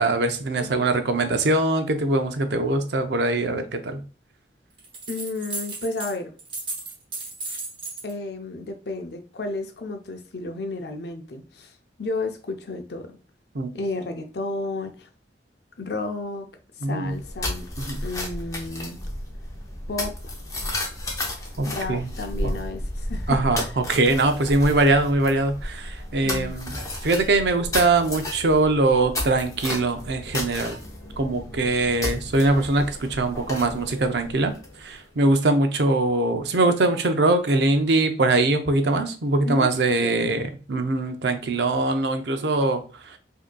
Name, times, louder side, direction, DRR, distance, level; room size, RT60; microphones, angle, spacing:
voice 1, 0.0-4.0 13.5-13.7 16.8-17.1 17.8-18.0 21.6-22.1 22.4-22.5 23.3-26.7 27.0-30.8 31.2-34.5 34.8-42.8 43.1-43.2, right 2 dB, 70° right, 0.6 m, -22 dB
sound 1, 4.8-6.1 6.4-8.1, right 3 dB, 25° right, 1.0 m, -34 dB
voice 2, 5.1-6.3 8.0-11.7 12.0-13.2 13.7-15.1 15.8-16.5 16.8-17.7 18.0-19.0 19.9-20.3 21.7-23.7 26.2-26.5 39.4-39.7 40.0-40.4, left 2 dB, 65° left, 0.6 m, -32 dB
sound 2, 17.0-35.0, left 1 dB, 20° left, 0.8 m, -33 dB
4.9 x 2.8 x 2.2 m
head